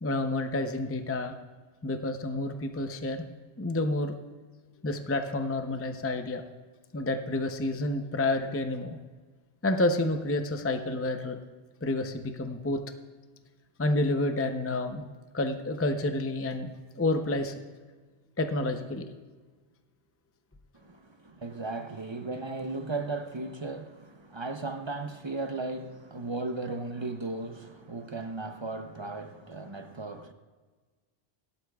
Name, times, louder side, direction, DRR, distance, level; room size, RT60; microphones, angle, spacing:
voice 1, 0.0-1.3 1.8-3.2 3.6-4.1 4.8-6.4 6.9-9.0 9.6-11.4 11.8-12.8 13.8-15.0 15.3-16.7 17.0-17.6 18.4-19.1, left 2 dB, 15° left, 0.5 m, -29 dB
voice 2, 20.7-30.3, right 3 dB, 30° right, 0.6 m, -36 dB
17.5 x 12.0 x 2.3 m
omnidirectional pair, 1.2 m